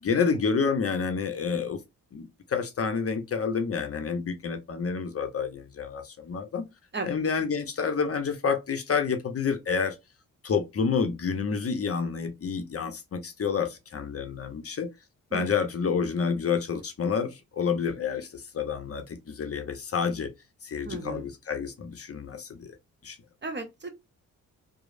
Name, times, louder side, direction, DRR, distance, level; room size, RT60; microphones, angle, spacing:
voice 1, 0.0-1.8 2.1-6.6 7.0-10.0 10.4-14.9 15.3-20.3 20.6-22.7 23.0-23.2, left 6 dB, 40° left, 0.7 m, -29 dB
voice 2, 20.8-21.3 23.4-23.9, right 3 dB, 30° right, 0.9 m, -35 dB
3.0 x 2.0 x 2.4 m
supercardioid pair, 55°, 35 cm